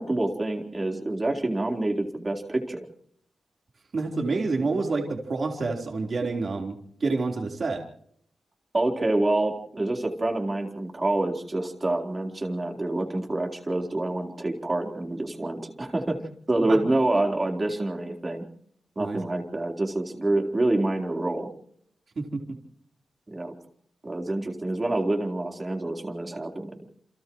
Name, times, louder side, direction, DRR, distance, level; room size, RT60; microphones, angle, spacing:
voice 1, 0.0-2.9 8.7-16.2 16.5-18.5 19.0-21.5 23.3-23.5 24.0-26.7, right 2 dB, 20° right, 2 dB, 4.1 m, -27 dB
voice 2, 3.9-7.8 16.7-16.8 19.0-19.2 22.2-22.6, right 3 dB, 45° right, 1 dB, 4.1 m, -28 dB
29.5 x 29.0 x 3.2 m, 0.67 s
wide cardioid pair, 160°, 0 cm